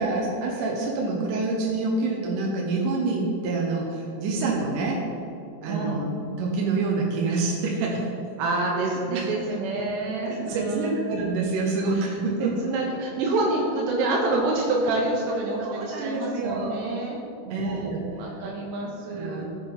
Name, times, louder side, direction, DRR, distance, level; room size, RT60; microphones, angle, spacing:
voice 1, 0.0-5.0 5.6-6.1 6.4-8.1 8.7-9.4 10.2-12.7 15.6-16.8 17.5-18.4 19.1-19.5, right 3 dB, 65° right, -2 dB, 2.3 m, -27 dB
voice 2, 5.7-6.0 8.4-11.0 11.9-12.1 12.4-17.9 18.2-19.5, right 2 dB, 80° right, -2 dB, 3.2 m, -27 dB
14.5 x 8.0 x 4.0 m, 2.6 s
omnidirectional pair, 4.7 m